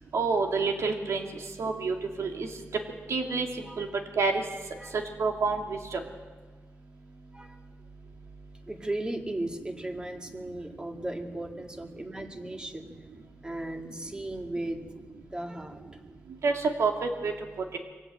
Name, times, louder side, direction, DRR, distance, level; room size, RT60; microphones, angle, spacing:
voice 1, 0.1-1.2 1.6-2.5 3.1-3.9 4.2-4.4 5.2-6.0 16.4-17.3, right 4 dB, 80° right, 3 dB, 2.7 m, -28 dB
voice 2, 8.7-12.9 13.4-14.8 15.2-15.8, right 1 dB, 15° right, 4 dB, 2.1 m, -36 dB
24.0 x 18.0 x 7.8 m, 1.4 s
wide cardioid pair, 110°, 5 cm